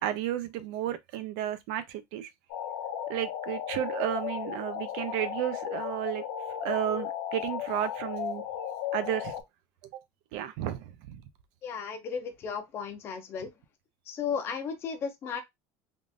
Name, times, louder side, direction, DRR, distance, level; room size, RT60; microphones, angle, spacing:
voice 1, 0.0-2.3 3.1-6.2 6.6-8.4 8.9-9.3 9.9-10.0 10.3-11.2, right 12 dB, 60° right, 0.5 m, -32 dB
sound 1, 2.5-9.4, left 9 dB, 75° left, 0.8 m, -35 dB
voice 2, 11.6-13.5 14.1-15.4, left 6 dB, 30° left, 0.6 m, -34 dB
3.5 x 2.5 x 2.5 m
cardioid pair, 175°, 9 cm